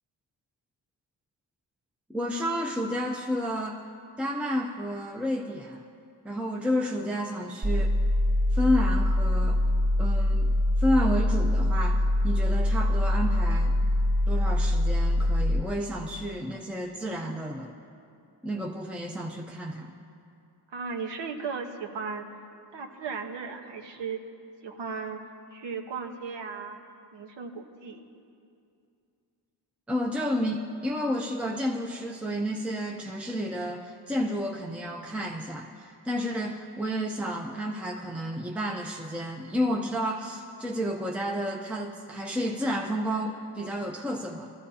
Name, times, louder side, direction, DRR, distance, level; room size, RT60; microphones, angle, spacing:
voice 1, 2.1-3.8 4.2-5.9 6.2-7.9 8.5-9.6 10.0-13.7 14.3-17.7 18.4-19.9 29.9-44.5, equal, 5° right, 0 dB, 0.6 m, -31 dB
sound 1, 7.6-15.6, left 1 dB, 50° right, 1.6 m, -24 dB
voice 2, 20.7-22.3 22.7-24.2 24.6-25.2 25.5-26.8 27.1-28.1, right 5 dB, 75° right, 2 dB, 1.2 m, -36 dB
22.5 x 14.0 x 2.8 m, 2.5 s
wide cardioid pair, 125°, 43 cm